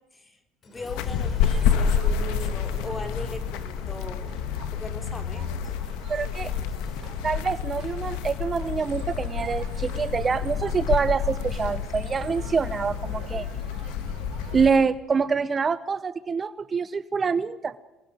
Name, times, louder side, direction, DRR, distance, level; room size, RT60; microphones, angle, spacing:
Boom, 0.6-10.0 10.5-11.0, left 4 dB, 40° left, 3.6 m, -45 dB
voice 1, 0.7-4.2 4.7-5.6, left 2 dB, 15° left, 7 dB, 3.8 m, -39 dB
sound 1, 0.9-14.7, left 7 dB, 80° left, 1.5 m, -29 dB
Crowd, 1.2-14.7, right 6 dB, 45° right, 5.9 m, -46 dB
voice 2, 6.1-6.5 7.2-13.5 14.5-17.7, right 5 dB, 30° right, 14 dB, 0.7 m, -26 dB
26.5 x 18.0 x 9.0 m, 1.1 s
supercardioid pair, 105°, 0 cm